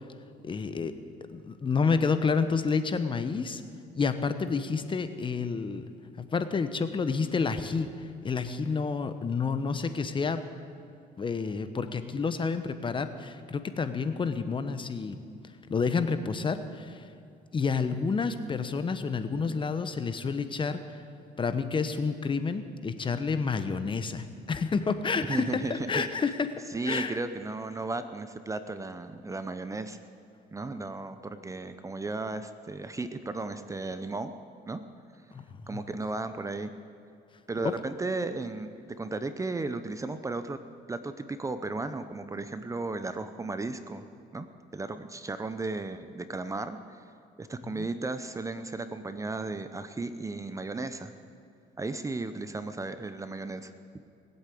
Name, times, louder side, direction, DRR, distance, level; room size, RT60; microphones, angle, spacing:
voice 1, 0.4-0.9 1.3-3.6 3.9-5.9 6.2-7.9 8.2-10.4 11.2-15.2 15.7-17.0 17.5-20.8 21.4-26.5 26.8-27.2 35.3-35.4 37.6-37.7 47.7-47.9, left 5 dB, 30° left, 10 dB, 1.0 m, -29 dB
voice 2, 25.3-26.1 26.7-30.0 30.5-34.3 34.7-34.8 35.7-36.7 37.5-40.6 40.9-44.0 44.3-44.5 44.7-47.0 47.4-51.1 51.8-53.7, right 3 dB, 20° right, 10 dB, 0.7 m, -35 dB
20.0 x 8.4 x 8.4 m, 2.5 s
cardioid pair, 110°, 17 cm